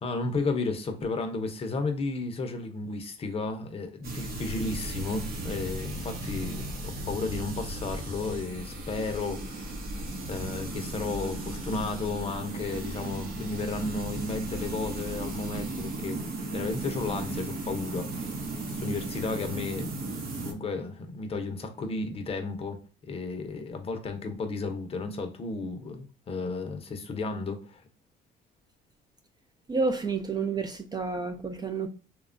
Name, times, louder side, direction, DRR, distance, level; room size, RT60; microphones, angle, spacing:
voice 1, 0.0-9.8 10.3-16.2 16.5-18.4 18.6-19.9 20.4-22.8 23.1-27.8, left 3 dB, 35° left, 0.6 m, -33 dB
sound 1, 4.0-20.5, right 2 dB, 60° right, 0.8 m, -36 dB
voice 2, 29.7-31.9, right 4 dB, 25° right, 0.3 m, -30 dB
2.9 x 2.2 x 2.4 m
cardioid pair, 110°, 17 cm